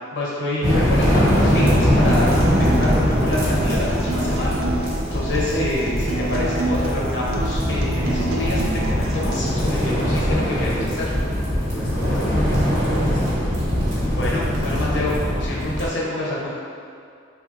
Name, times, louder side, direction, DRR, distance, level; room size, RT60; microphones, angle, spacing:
voice 1, 0.1-2.3 2.6-10.9 14.1-16.5, left 1 dB, 60° left, -6 dB, 0.7 m, -27 dB
sound 1, 0.6-15.9, equal, 40° right, 1.2 m, -21 dB
Acoustic guitar, 1.4-9.4, right 2 dB, 90° right, 0.4 m, -29 dB
voice 2, 9.8-10.9 11.7-13.4, equal, 25° left, -10 dB, 0.5 m, -34 dB
3.4 x 2.3 x 2.8 m, 2.3 s
head